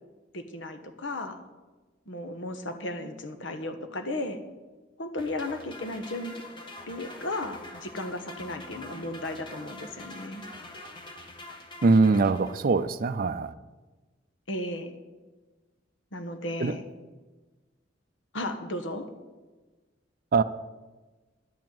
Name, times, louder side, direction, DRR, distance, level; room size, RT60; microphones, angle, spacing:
voice 1, 0.3-1.4 2.1-4.4 5.0-6.3 6.9-10.4 14.5-14.9 16.1-16.8 18.3-19.1, left 1 dB, 70° left, 8 dB, 1.2 m, -35 dB
sound 1, 5.2-12.9, left 2 dB, 25° left, 1.4 m, -45 dB
voice 2, 11.8-13.5 16.6-16.8 20.3-20.4, right 4 dB, 50° right, 11 dB, 0.4 m, -22 dB
10.5 x 6.0 x 8.9 m, 1.2 s
head